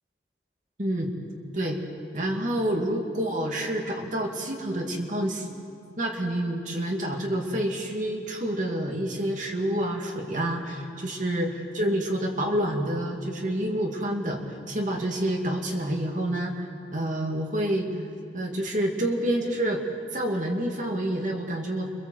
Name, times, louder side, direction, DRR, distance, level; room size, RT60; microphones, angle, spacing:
voice 1, 0.8-1.1 1.5-1.8 2.1-5.5 6.0-11.5 11.7-16.5 16.9-17.9 18.3-19.8 20.1-21.9, right 1 dB, 45° right, 1 dB, 2.3 m, -28 dB
28.5 x 23.5 x 7.8 m, 2.4 s
head